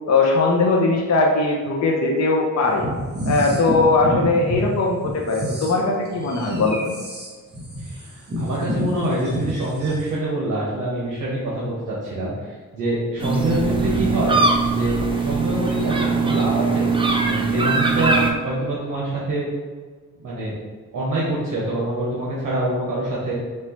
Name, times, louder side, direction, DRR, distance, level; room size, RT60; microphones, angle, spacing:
voice 1, 0.1-2.9 3.2-6.9, left 3 dB, 55° left, 0 dB, 0.5 m, -20 dB
sound 1, 2.7-4.6 5.0-10.1, equal, 30° right, 0.9 m, -28 dB
voice 2, 7.8-14.4 14.6-16.9 17.2-18.2 18.4-19.5 20.2-20.5 20.9-23.3, right 1 dB, 70° right, -6 dB, 1.1 m, -25 dB
sound 2, 13.2-18.3, right 4 dB, 15° right, 0.4 m, -21 dB
4.4 x 3.0 x 3.0 m, 1.5 s
wide cardioid pair, 135°, 33 cm